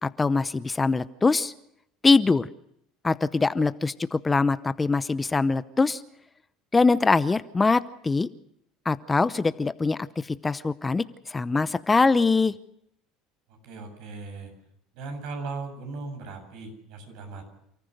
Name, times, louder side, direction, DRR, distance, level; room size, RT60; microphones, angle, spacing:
voice 1, 0.0-1.5 2.0-2.5 3.0-6.0 6.7-8.3 8.9-12.5, left 3 dB, 20° left, 14 dB, 0.7 m, -23 dB
voice 2, 13.5-14.5 14.9-17.4, right 3 dB, 70° right, 5 dB, 7.9 m, -38 dB
29.0 x 14.5 x 6.6 m, 0.76 s
supercardioid pair, 100°, 0 cm